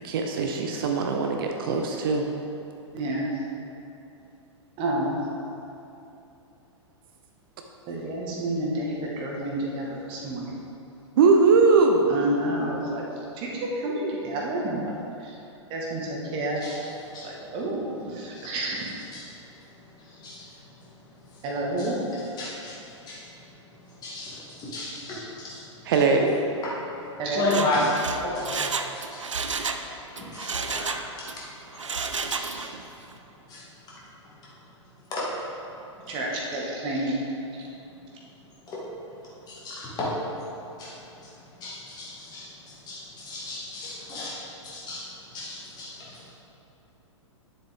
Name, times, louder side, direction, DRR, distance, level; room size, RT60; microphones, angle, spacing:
voice 1, 0.0-2.2 11.2-12.0 25.9-26.3, right 4 dB, 45° right, 3 dB, 0.7 m, -20 dB
voice 2, 2.9-3.3 4.8-5.2 7.9-10.5 12.1-13.0 13.3-14.9 15.2-15.4 15.7-16.6 17.2-18.9 21.4-22.1 27.2-27.4 36.1-37.2 37.6-37.7, right 1 dB, 30° right, -3 dB, 1.8 m, -29 dB
voice 3, 16.6-17.6 18.2-18.8 19.1-21.4 21.8-25.9 26.6-29.3 29.5-35.7 36.1-36.2 38.6-46.3, left 1 dB, 25° left, -7 dB, 2.2 m, -35 dB
Mechanisms, 27.4-29.9 30.2-31.4 31.7-32.8 33.1-33.2, right 4 dB, 75° right, 0.6 m, -31 dB
10.0 x 7.4 x 3.7 m, 2.9 s
figure-of-eight pair, 105°, 16 cm